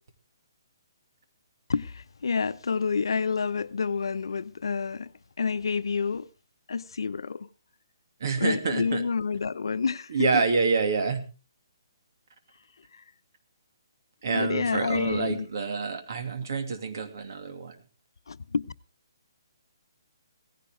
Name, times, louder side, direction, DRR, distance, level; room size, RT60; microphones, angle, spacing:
voice 1, 1.7-5.1 5.4-6.3 6.7-7.5 8.4-10.4 14.3-15.5 18.3-18.7, left 5 dB, 80° left, 0.8 m, -28 dB
voice 2, 8.2-9.0 10.1-11.2 14.2-17.8, right 4 dB, 50° right, 2.6 m, -27 dB
17.5 x 15.5 x 3.6 m
hypercardioid pair, 175°, 2 cm